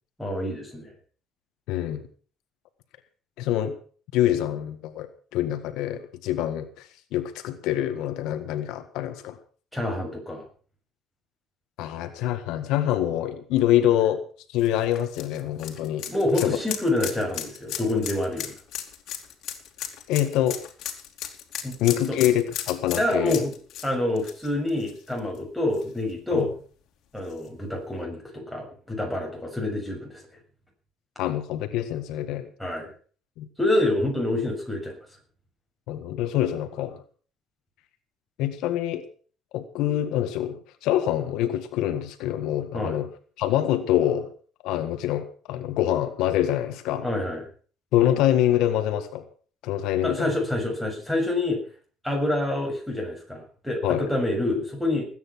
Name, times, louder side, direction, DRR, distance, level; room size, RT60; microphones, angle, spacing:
voice 1, 0.2-0.9 9.7-10.4 16.1-18.5 21.6-21.8 22.1-22.2 23.0-23.5 23.8-26.5 27.1-30.2 32.6-32.9 33.6-34.9 42.7-43.0 47.0-47.4 50.0-51.6 52.0-55.1, left 1 dB, ahead, -1 dB, 6.8 m, -27 dB
voice 2, 1.7-2.1 3.4-3.7 4.1-9.4 11.8-14.2 14.5-16.1 16.4-16.6 20.1-20.6 21.8-23.4 26.3-26.5 31.2-32.5 33.4-33.5 35.9-37.0 38.4-39.0 39.5-43.1 43.4-44.3 44.6-47.1 47.9-49.2 49.6-50.3 53.8-54.1, left 12 dB, 80° left, 9 dB, 1.6 m, -25 dB
sound 1, 14.6-25.4 25.7-25.8 27.3-27.4, left 10 dB, 65° left, 2.8 m, -36 dB
19.5 x 9.5 x 6.2 m, 0.43 s
cardioid pair, 145°, 0 cm